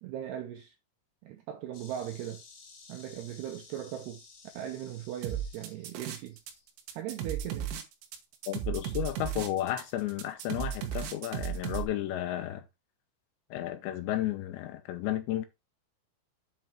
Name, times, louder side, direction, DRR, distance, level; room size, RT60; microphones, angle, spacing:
voice 1, 0.0-0.8 1.2-2.4 2.9-4.2 4.5-6.4 6.9-7.7, right 11 dB, 85° right, 2.3 m, -39 dB
Insect, 1.7-6.7, left 5 dB, 55° left, 3.1 m, -54 dB
sound 1, 5.2-6.5 6.8-11.8, right 10 dB, 70° right, 3.3 m, -35 dB
voice 2, 8.5-12.6 13.5-15.5, left 13 dB, 75° left, 2.8 m, -33 dB
7.9 x 5.4 x 4.5 m
omnidirectional pair, 5.7 m